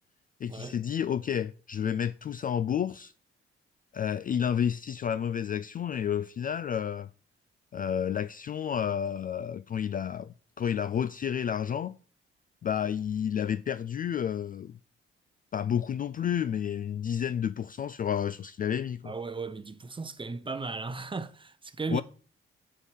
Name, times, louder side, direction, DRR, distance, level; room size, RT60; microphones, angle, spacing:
voice 1, 0.4-3.1 3.9-7.1 7.7-12.0 12.6-14.7 15.5-19.1 21.9-22.0, left 8 dB, 30° left, 0.3 m, -30 dB
voice 2, 19.0-22.0, right 4 dB, 15° right, 0.7 m, -36 dB
5.3 x 4.7 x 5.6 m
figure-of-eight pair, 40°, 29 cm